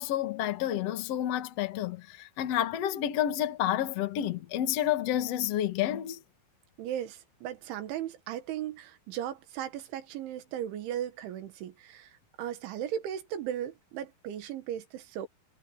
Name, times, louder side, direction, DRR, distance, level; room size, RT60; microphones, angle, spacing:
voice 1, 0.0-6.2, left 11 dB, 80° left, 1.4 m, -30 dB
voice 2, 6.8-12.1 12.4-15.3, right 10 dB, 75° right, 4.0 m, -36 dB
omnidirectional pair, 5.5 m